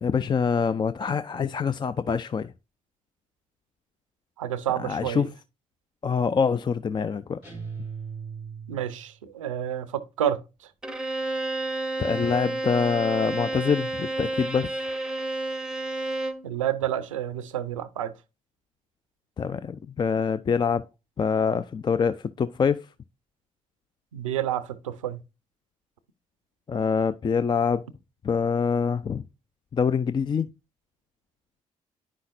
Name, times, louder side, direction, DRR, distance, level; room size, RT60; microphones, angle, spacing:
voice 1, 0.0-2.5 4.8-5.3 6.0-7.4 12.0-14.7 19.4-20.9 21.2-22.9 26.7-27.8 28.2-29.2 29.7-30.5, left 6 dB, 30° left, 0.4 m, -25 dB
voice 2, 4.4-5.3 8.7-9.9 10.2-10.4 16.4-18.1 24.1-25.2, right 11 dB, 80° right, 0.5 m, -29 dB
sound 1, 7.4-9.1, right 6 dB, 70° left, 4.6 m, -38 dB
Bowed string instrument, 10.8-16.5, right 2 dB, 5° right, 0.8 m, -30 dB
10.0 x 5.7 x 2.6 m
figure-of-eight pair, 40°, 16 cm